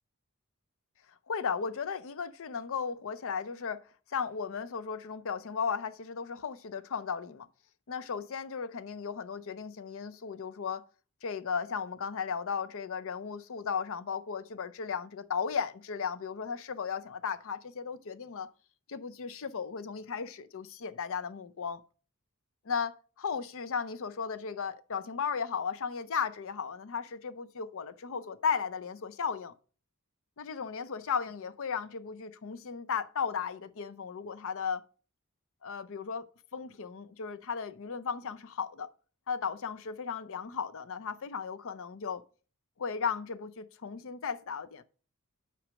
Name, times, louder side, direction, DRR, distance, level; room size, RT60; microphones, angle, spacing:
voice 1, 1.3-3.8 4.1-7.5 7.9-10.8 11.2-18.5 18.9-21.8 22.7-29.5 30.4-34.9 35.6-36.3 36.5-38.9 39.3-42.2 42.8-44.8, left 6 dB, 65° left, 0.6 m, -35 dB
6.0 x 4.6 x 6.2 m
head